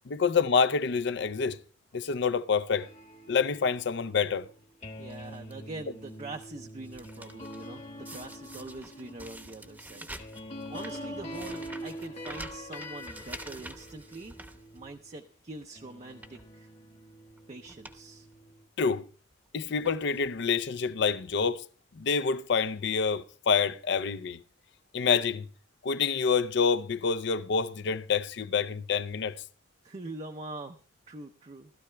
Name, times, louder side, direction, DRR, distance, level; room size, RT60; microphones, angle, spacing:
voice 1, 0.1-1.6 1.9-2.9 3.3-4.5 18.8-19.1 19.5-21.6 22.0-24.4 24.9-25.5 25.8-29.4, left 5 dB, 65° left, 0.5 m, -27 dB
sound 1, 2.7-15.2 15.7-18.6, equal, 35° left, 1.3 m, -45 dB
voice 2, 5.0-10.1 10.7-14.4 14.7-16.7 17.5-18.3 29.8-31.7, right 2 dB, 35° right, 0.6 m, -43 dB
sound 2, 5.1-5.5 6.1-6.4 6.7-7.7 8.1-15.2 15.5-15.7 16.1-16.5 17.3-17.4 17.7-18.0 18.3-18.4 19.3-19.5 19.8-20.3 21.1-21.2 21.4-21.5, right 1 dB, 10° right, 0.9 m, -47 dB
19.0 x 13.0 x 2.2 m
head